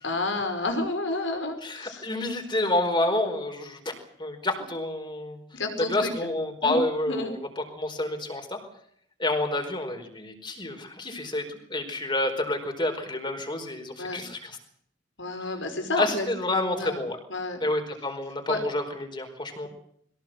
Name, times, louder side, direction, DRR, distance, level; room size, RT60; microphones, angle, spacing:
voice 1, 0.0-2.0 5.5-6.1 6.6-6.8 7.1-7.3 14.0-14.2 15.2-16.3 16.8-17.0 17.3-17.6 18.5-18.6 19.6-19.7, left 2 dB, 85° left, 6 dB, 5.3 m, -30 dB
voice 2, 1.6-3.9 4.2-5.4 5.8-8.6 9.2-14.6 16.0-17.2 17.6-19.7, left 2 dB, 25° left, 5 dB, 4.6 m, -29 dB
22.5 x 18.0 x 7.9 m, 0.67 s
head